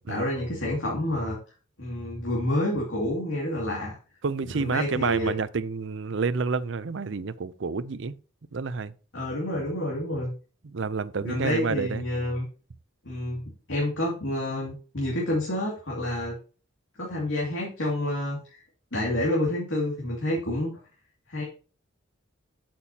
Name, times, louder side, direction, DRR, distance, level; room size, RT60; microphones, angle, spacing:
voice 1, 0.0-1.4 1.8-4.0 4.4-5.3 9.1-10.3 11.2-12.5 13.0-13.4 13.7-16.4 17.0-18.6 18.9-20.7 21.3-21.4, left 1 dB, 70° left, 2.5 m, -28 dB
voice 2, 4.2-8.2 8.5-8.9 10.6-12.0, right 4 dB, 65° right, 0.5 m, -29 dB
8.3 x 7.7 x 2.9 m
head